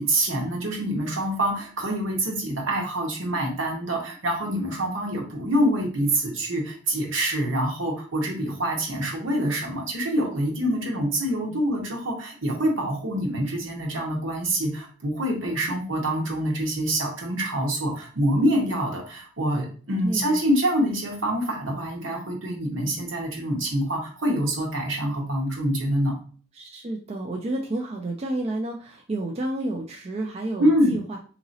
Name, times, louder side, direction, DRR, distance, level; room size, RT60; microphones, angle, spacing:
voice 1, 0.0-26.1 30.6-31.0, right 1 dB, 75° right, 0 dB, 1.1 m, -26 dB
voice 2, 10.6-11.1 11.5-11.6 20.0-20.4 26.5-31.2, right 2 dB, 30° right, 1 dB, 0.3 m, -31 dB
3.8 x 2.9 x 2.6 m, 0.41 s
head